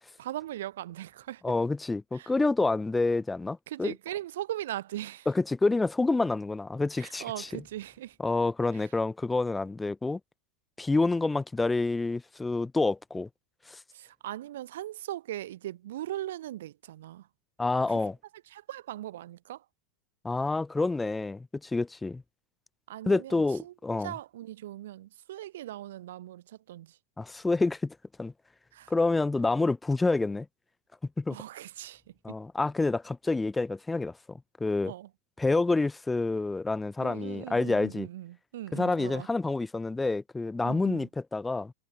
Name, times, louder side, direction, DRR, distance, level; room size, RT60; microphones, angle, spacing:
voice 1, 0.2-1.4 2.1-2.3 3.7-5.3 7.0-8.2 8.7-8.9 13.9-17.3 17.9-18.0 18.5-19.6 22.9-23.7 24.0-27.0 28.7-28.9 31.3-32.0 32.3-32.4 34.8-35.1 37.0-39.3 40.6-41.1, right 13 dB, 55° right, 1.1 m, -39 dB
voice 2, 1.4-3.9 5.3-7.5 8.2-10.2 10.8-13.3 13.7-13.8 17.6-18.2 20.2-22.2 23.1-24.1 27.2-28.3 28.9-30.5 31.2-31.4 32.2-34.9 35.4-38.1 38.7-41.7, left 3 dB, 10° left, 0.4 m, -28 dB
figure-of-eight pair, 90°, 0 cm